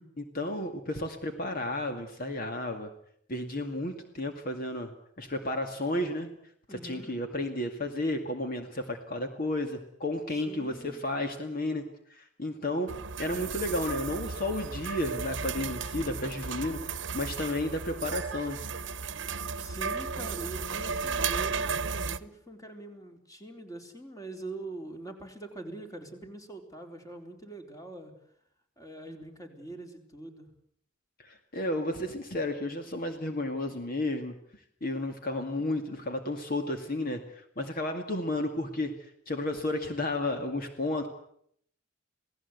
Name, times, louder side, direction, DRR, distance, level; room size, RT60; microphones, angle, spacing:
voice 1, 0.2-2.9 3.3-4.9 5.2-6.3 6.7-11.8 12.1-12.9 13.2-18.6 31.2-34.3 34.8-41.1, left 1 dB, 50° left, 5 dB, 2.2 m, -32 dB
voice 2, 6.7-7.2 10.5-11.0 19.3-21.7 22.1-28.1 28.8-30.5, right 2 dB, 20° left, 4 dB, 4.0 m, -43 dB
sound 1, 12.9-22.2, right 5 dB, 70° right, 1.0 m, -34 dB
28.5 x 18.0 x 8.2 m, 0.68 s
head